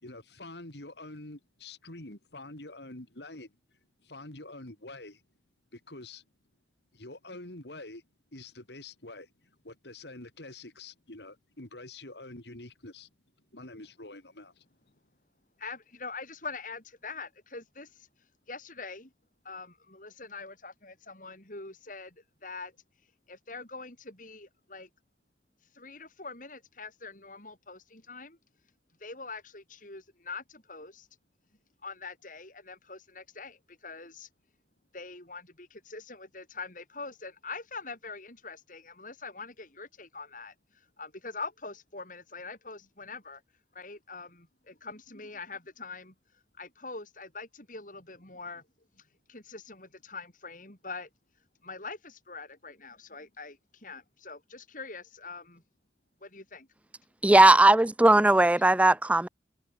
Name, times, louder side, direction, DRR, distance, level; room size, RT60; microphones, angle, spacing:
voice 1, 0.0-3.5 4.0-5.2 5.7-6.2 6.9-8.0 8.3-13.1 13.5-14.6, left 2 dB, 70° left, 3.5 m, -46 dB
voice 2, 15.6-18.1 18.5-19.1 19.4-22.7 23.3-24.9 25.7-28.4 29.0-31.1 31.8-34.3 34.9-40.5 41.0-43.4 43.7-46.1 46.6-48.6 49.3-51.1 51.6-55.6 56.2-56.7, left 4 dB, 50° left, 6.1 m, -43 dB
voice 3, 57.2-59.3, right 2 dB, 10° right, 0.3 m, -18 dB
head